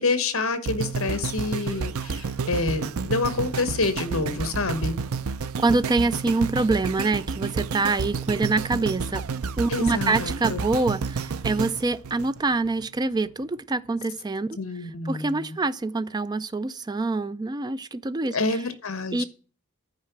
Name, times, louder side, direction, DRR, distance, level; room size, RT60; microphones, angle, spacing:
voice 1, 0.0-4.9 9.7-10.6 14.6-15.6 18.3-19.3, left 3 dB, 65° left, 1.2 m, -27 dB
sound 1, 0.7-12.9 13.4-13.5, right 5 dB, 75° right, 0.5 m, -30 dB
voice 2, 5.6-9.2 9.6-14.6 15.0-18.4 19.1-19.2, right 3 dB, 20° right, 0.4 m, -25 dB
10.5 x 4.7 x 5.9 m
head